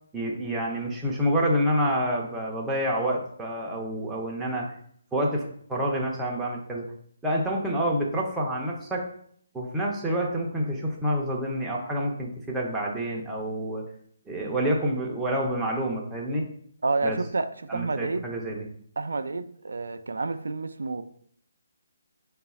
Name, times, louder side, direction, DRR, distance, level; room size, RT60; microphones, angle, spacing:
voice 1, 0.1-4.7 5.1-6.8 7.2-9.1 9.5-13.8 14.3-16.5 17.0-17.2 17.7-18.7, equal, 5° right, -3 dB, 0.5 m, -28 dB
voice 2, 16.8-18.3 19.0-21.0, right 3 dB, 90° right, 11 dB, 0.3 m, -29 dB
3.9 x 2.3 x 4.0 m, 0.63 s
hypercardioid pair, 170°, 0 cm